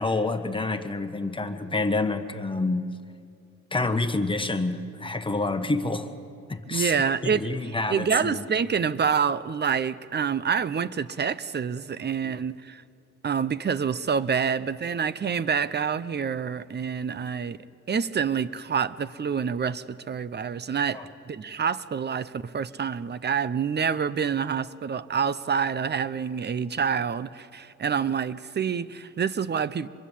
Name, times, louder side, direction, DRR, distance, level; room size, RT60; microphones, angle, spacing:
voice 1, 0.0-2.9 3.7-6.1 6.5-6.9 7.2-8.4 12.2-12.4 20.9-21.0, left 2 dB, 15° left, 1.5 m, -28 dB
voice 2, 6.7-12.8 13.2-17.6 17.9-29.9, right 6 dB, 35° right, 0.8 m, -27 dB
25.5 x 22.5 x 7.6 m
cardioid pair, 90°, 30 cm